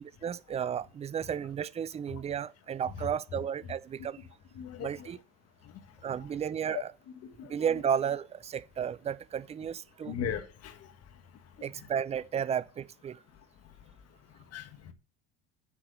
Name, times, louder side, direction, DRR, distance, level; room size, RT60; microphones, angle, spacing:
voice 1, 0.2-4.2 4.8-5.2 6.0-6.9 7.5-10.1 11.6-13.2, right 8 dB, 20° right, 0.4 m, -33 dB
voice 2, 4.5-5.1 5.6-5.7 6.1-6.3 6.7-6.8 7.2-7.8 10.0-10.9 11.6-11.9 14.5-14.9, left 8 dB, 45° left, 1.5 m, -39 dB
8.6 x 4.7 x 6.3 m
hypercardioid pair, 80°, 33 cm